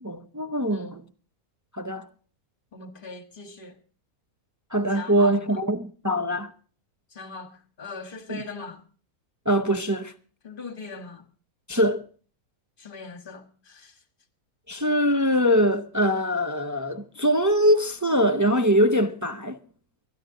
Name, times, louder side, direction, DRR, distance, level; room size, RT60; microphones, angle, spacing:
voice 1, 0.0-1.0 1.7-2.1 4.7-6.5 8.3-8.4 9.5-10.1 11.7-12.0 14.7-19.6, equal, 25° right, 0.3 m, -23 dB
voice 2, 2.7-3.8 4.8-5.6 7.1-8.8 10.4-11.2 12.8-14.0, left 4 dB, 35° left, 1.7 m, -40 dB
24.0 x 10.0 x 3.8 m
omnidirectional pair, 1.6 m